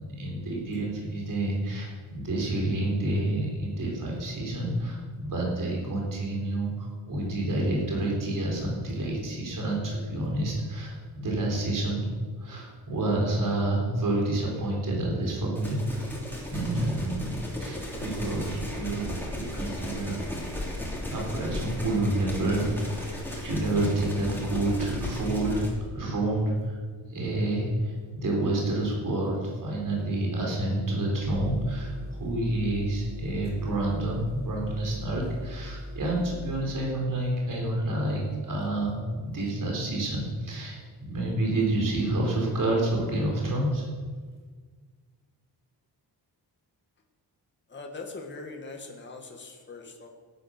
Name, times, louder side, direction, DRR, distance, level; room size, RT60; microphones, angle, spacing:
voice 1, 0.2-12.1 12.4-16.2 16.5-20.2 21.0-26.8 27.1-43.8, right 1 dB, 50° right, -2 dB, 4.3 m, -29 dB
sound 1, 15.6-25.7, left 1 dB, 5° left, 3.1 m, -36 dB
sound 2, 31.2-36.6, equal, 80° left, 3.3 m, -39 dB
voice 2, 47.7-50.1, left 3 dB, 25° left, 2 dB, 1.7 m, -41 dB
17.0 x 9.8 x 6.6 m, 1.5 s
wide cardioid pair, 175°, 41 cm